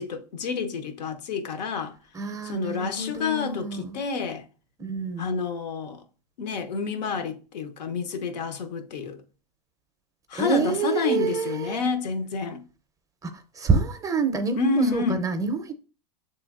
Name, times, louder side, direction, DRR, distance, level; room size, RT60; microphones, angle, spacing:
voice 1, 0.0-1.9 2.4-4.4 5.2-6.0 6.4-9.2 10.3-12.6 14.6-15.2, left 4 dB, 80° left, 0.7 m, -29 dB
voice 2, 2.1-4.0 4.8-5.3 10.3-11.8 13.2-15.7, right 5 dB, 15° right, 0.5 m, -27 dB
6.1 x 3.1 x 2.4 m
hypercardioid pair, 120°, 21 cm